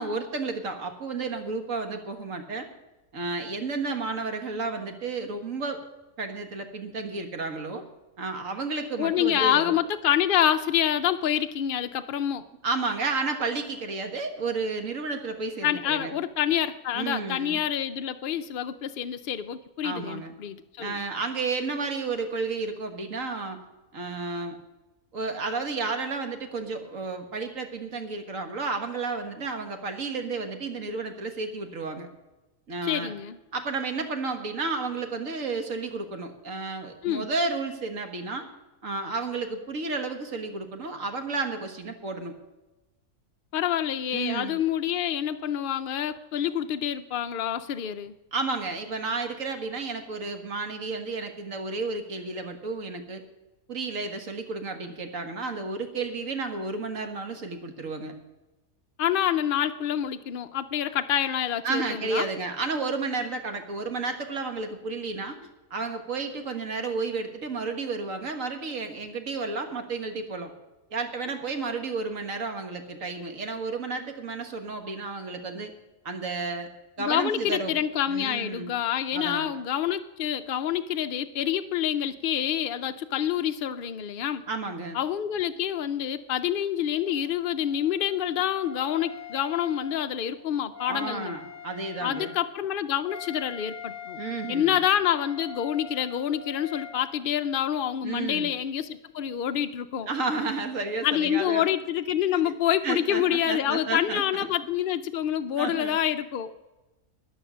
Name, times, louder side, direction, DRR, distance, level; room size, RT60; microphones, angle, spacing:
voice 1, 0.0-2.7 3.1-5.8 6.2-7.8 8.2-9.7 12.6-16.1 16.9-17.6 19.8-20.3 20.8-23.6 23.9-24.6 25.1-32.1 32.7-33.1 33.5-38.5 38.8-42.3 44.1-44.6 48.3-53.2 53.7-58.1 61.6-65.4 65.7-70.5 70.9-75.7 76.1-76.7 77.0-77.8 78.1-78.7 79.1-79.5 84.5-85.0 90.9-92.3 94.2-94.8 98.0-98.5 100.1-101.7 102.4-102.5 102.8-104.2 105.6-106.0, right 3 dB, 65° right, 5 dB, 1.9 m, -32 dB
voice 2, 9.0-12.4 15.6-21.0 32.9-33.4 37.0-37.3 43.5-48.1 59.0-62.3 77.0-84.4 84.9-91.3 92.0-94.2 94.5-100.1 101.0-106.5, left 10 dB, 65° left, 8 dB, 0.5 m, -27 dB
Wind instrument woodwind instrument, 87.0-97.0, left 7 dB, 35° left, 1.4 m, -43 dB
13.5 x 10.0 x 6.2 m, 1.1 s
omnidirectional pair, 1.5 m